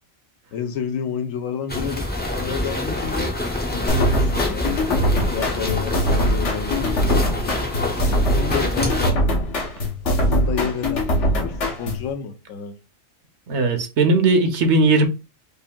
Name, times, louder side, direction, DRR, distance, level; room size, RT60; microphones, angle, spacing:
voice 1, 0.5-3.3 3.7-4.7 5.3-7.3 8.3-9.2 10.0-11.1 11.4-12.8 14.2-14.3, left 7 dB, 90° left, 1.1 m, -30 dB
sound 1, 1.7-9.1, left 1 dB, 10° left, 0.5 m, -26 dB
sound 2, 3.9-12.1, equal, 65° left, 1.3 m, -22 dB
voice 2, 13.5-15.1, right 3 dB, 65° right, 1.0 m, -18 dB
5.2 x 2.6 x 2.2 m
omnidirectional pair, 1.3 m